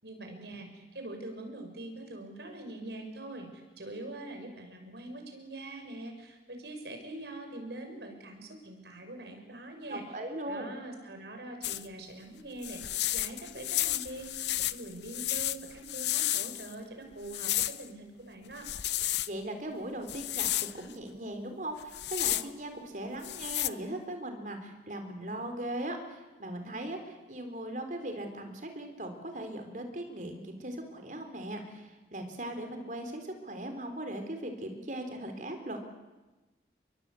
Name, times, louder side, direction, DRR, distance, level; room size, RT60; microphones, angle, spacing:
voice 1, 0.0-10.0 10.5-12.8 13.1-18.7, right 1 dB, 70° right, 4 dB, 6.1 m, -43 dB
voice 2, 9.9-10.7 19.2-20.5 20.7-35.8, right 1 dB, 45° right, 6 dB, 3.9 m, -39 dB
sound 1, 11.6-11.8 12.6-16.7 17.3-17.8 18.6-19.3 20.1-20.7 21.8-22.5 23.2-23.7, left 14 dB, 75° left, 0.8 m, -32 dB
29.5 x 22.5 x 8.5 m, 1.2 s
head